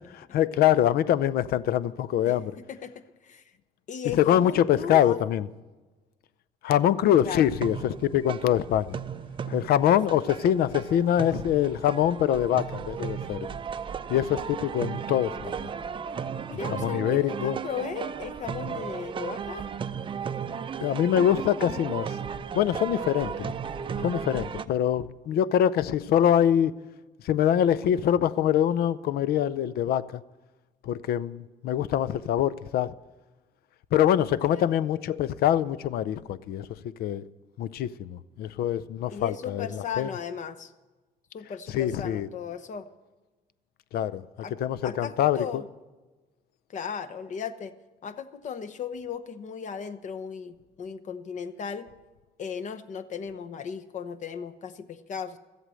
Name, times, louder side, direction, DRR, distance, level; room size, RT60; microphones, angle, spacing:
voice 1, 0.3-2.5 4.1-5.5 6.6-9.0 9.5-13.5 14.1-15.6 16.7-17.6 20.8-22.2 22.5-23.5 24.0-26.7 27.2-30.0 30.8-32.9 33.9-36.7 37.0-37.2 37.6-40.1 41.7-42.3 43.9-44.2 44.6-45.6, left 10 dB, 65° left, 0.5 m, -24 dB
voice 2, 2.7-3.4 3.9-5.2 7.2-7.4 10.1-10.4 16.5-19.7 34.5-34.7 39.1-40.7 41.3-42.9 44.4-44.5 44.8-45.7 46.7-47.7 48.0-51.9 52.4-55.4, left 7 dB, 45° left, 0.9 m, -36 dB
sound 1, 7.5-24.7, right 7 dB, 30° right, 0.5 m, -35 dB
13.5 x 8.1 x 7.6 m
cardioid pair, 110°, 17 cm